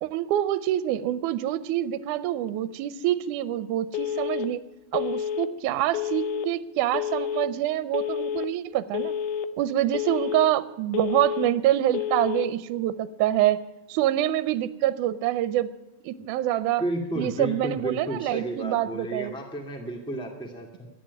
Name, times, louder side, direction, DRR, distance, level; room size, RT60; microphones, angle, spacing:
voice 1, 0.0-4.6 4.9-9.2 9.6-13.6 13.9-15.7 16.0-16.8 17.2-19.3, right 13 dB, 80° right, 15 dB, 2.1 m, -26 dB
Telephone, 3.9-4.5 4.9-5.5 5.9-6.5 6.9-7.5 7.9-8.5 8.9-9.5 9.9-10.5 10.9-11.5 11.9-12.5, left 9 dB, 80° left, 2.2 m, -29 dB
voice 2, 16.8-20.9, right 1 dB, ahead, 2 dB, 1.6 m, -32 dB
13.0 x 10.0 x 9.5 m, 0.98 s
omnidirectional pair, 3.6 m